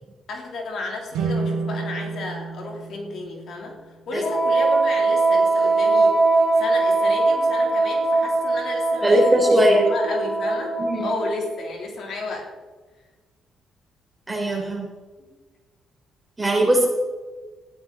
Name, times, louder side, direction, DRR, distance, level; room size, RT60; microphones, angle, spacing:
voice 1, 0.3-6.2 6.6-9.2 9.5-12.5 15.2-15.4, left 2 dB, 65° left, 0 dB, 3.4 m, -33 dB
sound 1, 1.1-4.4, right 4 dB, 85° right, 2.5 m, -30 dB
Wind instrument woodwind instrument, 4.2-11.5, right 3 dB, 40° left, 4.7 m, -21 dB
voice 2, 9.0-9.9 10.8-11.1 14.3-14.9 16.4-16.9, right 1 dB, 15° right, 0 dB, 4.5 m, -19 dB
14.5 x 11.5 x 4.1 m, 1.3 s
cardioid pair, 90°, 0 cm